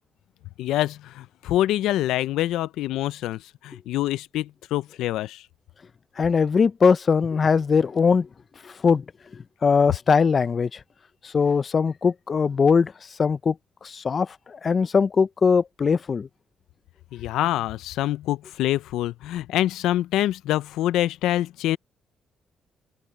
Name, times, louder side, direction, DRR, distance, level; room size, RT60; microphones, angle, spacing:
voice 1, 0.6-5.5 17.1-21.8, left 14 dB, 90° left, 0.4 m, -25 dB
voice 2, 6.2-8.3 8.6-9.0 9.3-10.8 11.2-12.9 13.2-13.5 13.8-16.3, left 5 dB, 40° left, 0.6 m, -21 dB
cardioid pair, 90°, 0 cm